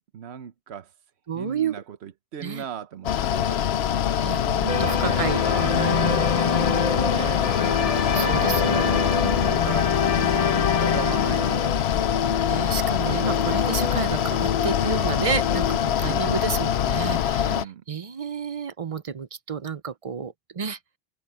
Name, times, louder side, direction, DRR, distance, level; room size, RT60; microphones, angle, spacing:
voice 1, 0.1-0.9 1.3-3.7 4.6-6.7 7.0-7.4 7.8-12.3 15.9-16.7 17.5-17.8, right 8 dB, 85° right, 1.1 m, -38 dB
voice 2, 1.3-1.7 2.4-2.6 4.2-6.3 7.7-8.9 12.5-20.8, right 6 dB, 40° right, 0.6 m, -31 dB
Mechanical fan, 3.0-17.6, left 9 dB, 85° left, 0.9 m, -24 dB
sound 1, 4.7-15.8, left 5 dB, 40° left, 0.9 m, -27 dB
omnidirectional pair, 1.1 m